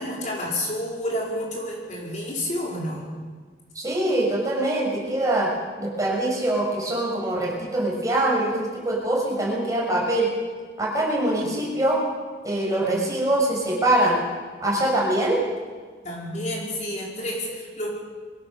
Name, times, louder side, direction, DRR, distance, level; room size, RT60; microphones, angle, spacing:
voice 1, 0.0-3.1 11.4-11.5 12.8-13.2 16.0-17.9, left 1 dB, 40° left, -3 dB, 4.6 m, -30 dB
voice 2, 3.7-5.5 5.8-10.3 10.8-12.0 12.4-14.2 14.6-15.4, right 1 dB, 20° right, -4 dB, 6.1 m, -23 dB
23.0 x 17.0 x 6.8 m, 1.5 s
head